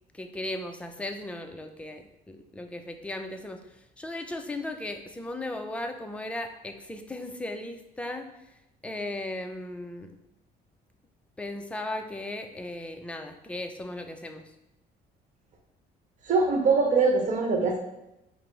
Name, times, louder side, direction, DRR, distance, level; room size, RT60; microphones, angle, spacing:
voice 1, 0.1-3.6 4.0-8.3 8.8-10.1 11.4-14.4, left 1 dB, 5° left, 5 dB, 0.4 m, -36 dB
voice 2, 16.2-17.8, right 4 dB, 50° right, 1 dB, 0.9 m, -23 dB
5.0 x 2.0 x 4.4 m, 0.90 s
cardioid pair, 110°, 17 cm